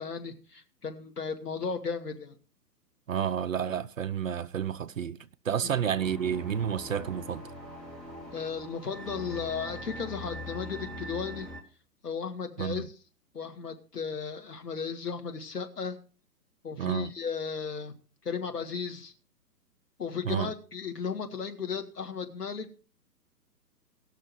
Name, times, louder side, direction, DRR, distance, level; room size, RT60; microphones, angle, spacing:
voice 1, 0.0-2.4 5.6-5.7 8.3-11.5 12.0-12.9 13.3-16.0 16.6-17.9 18.2-19.1 20.0-22.8, left 6 dB, 65° left, 2.0 m, -35 dB
voice 2, 3.1-7.5 12.6-12.8 16.8-17.1 20.2-20.5, right 8 dB, 55° right, 0.6 m, -30 dB
sound 1, 6.0-11.6, left 1 dB, ahead, 0.8 m, -42 dB
18.5 x 6.5 x 4.7 m
figure-of-eight pair, 130°, 49 cm